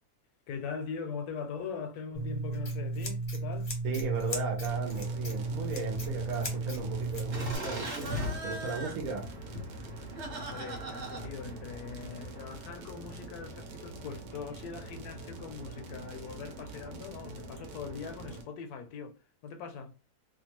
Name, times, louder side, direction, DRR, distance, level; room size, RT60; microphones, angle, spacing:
voice 1, 0.5-3.7 10.3-19.1 19.4-19.9, left 5 dB, 75° left, 1.0 m, -41 dB
Scissors, 2.1-7.5, right 2 dB, 35° left, 0.7 m, -34 dB
voice 2, 3.8-8.1 8.4-9.3, right 4 dB, 65° right, 1.1 m, -36 dB
sound 1, 4.7-18.4, right 2 dB, 90° right, 1.3 m, -45 dB
Laughter, 7.3-12.5, equal, 50° right, 1.3 m, -39 dB
2.8 x 2.3 x 2.9 m
omnidirectional pair, 1.7 m